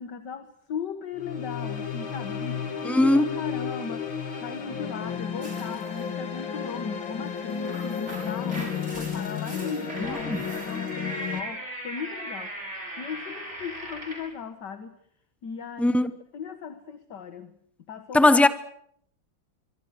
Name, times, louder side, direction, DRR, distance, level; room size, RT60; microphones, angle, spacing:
voice 1, 0.0-15.0 15.4-16.0 16.3-17.6 17.9-18.3, left 6 dB, 60° left, 2.0 m, -38 dB
sound 1, 1.1-11.4, left 7 dB, 75° left, 3.1 m, -33 dB
voice 2, 2.8-3.3 10.3-10.4 15.8-16.1 18.1-18.5, left 1 dB, ahead, 0.4 m, -18 dB
sound 2, 5.4-6.0 7.4-14.3, right 1 dB, 35° right, 7.7 m, -39 dB
25.5 x 24.5 x 6.4 m
omnidirectional pair, 2.1 m